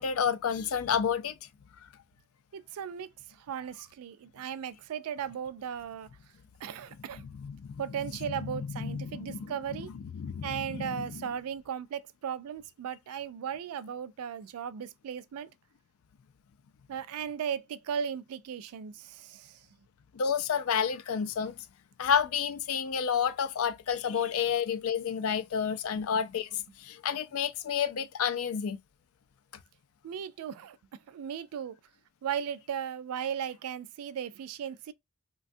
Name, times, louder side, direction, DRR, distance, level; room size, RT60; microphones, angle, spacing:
voice 1, 0.0-1.3 7.3-7.8 8.5-9.5 10.1-11.3 20.1-21.5 22.0-28.8, left 7 dB, 70° left, 0.4 m, -30 dB
voice 2, 2.5-3.1 3.4-6.1 6.6-7.2 7.8-9.9 10.4-15.5 16.9-19.6 30.0-31.8 32.2-34.9, right 8 dB, 85° right, 0.3 m, -36 dB
3.2 x 2.3 x 2.6 m
head